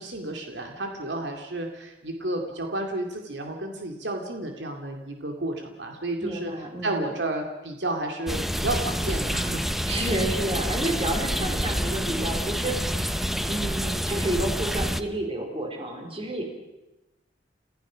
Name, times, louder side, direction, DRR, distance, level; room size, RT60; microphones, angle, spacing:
voice 1, 0.0-6.5 6.8-9.9, right 2 dB, 75° right, 3 dB, 2.3 m, -31 dB
voice 2, 6.2-7.1 9.9-16.4, right 1 dB, 35° right, 2 dB, 4.3 m, -30 dB
sound 1, 8.3-15.0, equal, ahead, 0.7 m, -28 dB
30.0 x 15.5 x 6.2 m, 0.99 s
head